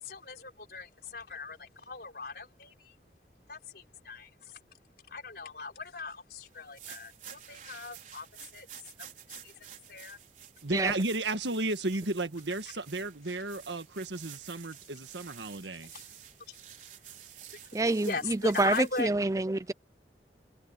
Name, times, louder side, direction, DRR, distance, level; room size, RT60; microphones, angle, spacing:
voice 1, 0.0-2.9 3.5-4.6 5.1-8.3 8.5-8.7 9.0-10.2 15.9-16.2 16.5-16.6 17.6-17.8 18.0-19.1, left 4 dB, 60° left, 5.1 m, -40 dB
sound 1, 6.6-19.1, right 10 dB, 45° right, 4.8 m, -51 dB
voice 2, 10.6-15.9, right 2 dB, 90° right, 1.7 m, -33 dB
voice 3, 17.7-19.7, right 2 dB, 20° right, 0.4 m, -27 dB
head